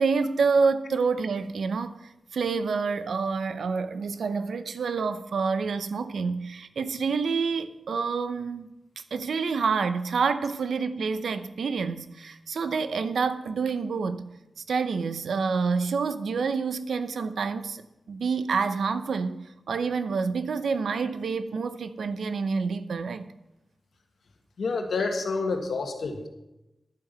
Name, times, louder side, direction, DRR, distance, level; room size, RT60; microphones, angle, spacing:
voice 1, 0.0-2.0 2.3-8.7 9.1-14.2 14.7-17.8 18.1-19.4 19.7-23.2, right 5 dB, 85° right, 0.7 m, -27 dB
voice 2, 24.6-26.3, left 4 dB, 75° left, 1.6 m, -28 dB
11.0 x 9.0 x 5.6 m
wide cardioid pair, 140°, 0 cm